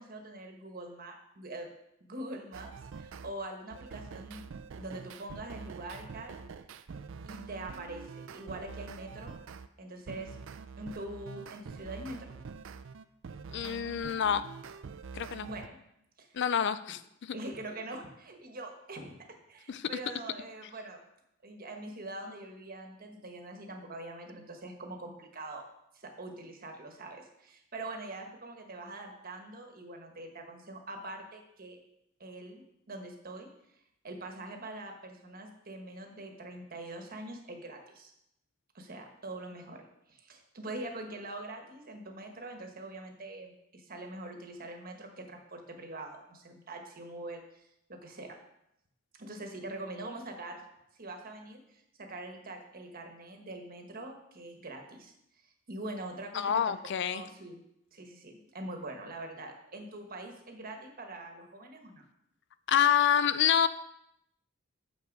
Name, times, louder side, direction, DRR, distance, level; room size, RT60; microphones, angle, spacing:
voice 1, 0.0-1.7 2.0-2.7 3.0-4.5 4.8-6.4 7.2-9.4 9.8-10.4 10.8-12.3 15.4-15.8 16.2-16.4 17.3-21.0 21.4-25.7 25.9-31.8 32.2-32.6 32.9-33.5 34.0-38.1 38.7-48.4 49.1-50.6 51.0-55.1 55.4-56.7 57.1-57.6 57.9-62.0, right 2 dB, 45° right, 4 dB, 1.2 m, -43 dB
sound 1, 2.5-3.3 3.7-9.7 10.1-15.7, right 5 dB, 65° right, 0.4 m, -45 dB
voice 2, 13.5-14.4 15.1-15.5 16.3-17.4 19.7-19.9 56.3-57.2 62.7-63.7, left 9 dB, 60° left, 14 dB, 0.4 m, -27 dB
7.1 x 5.9 x 5.3 m, 0.80 s
head